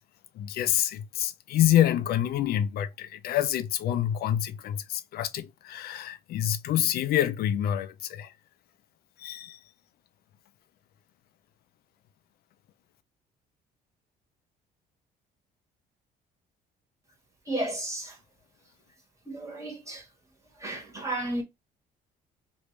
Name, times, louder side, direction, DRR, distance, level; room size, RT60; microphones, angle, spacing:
voice 1, 0.3-8.3 9.2-9.6, left 11 dB, 65° left, 0.5 m, -27 dB
voice 2, 17.5-18.2 19.2-20.0 20.6-21.4, right 1 dB, 15° right, 1.6 m, -33 dB
3.0 x 2.7 x 3.2 m
cardioid pair, 110°, 17 cm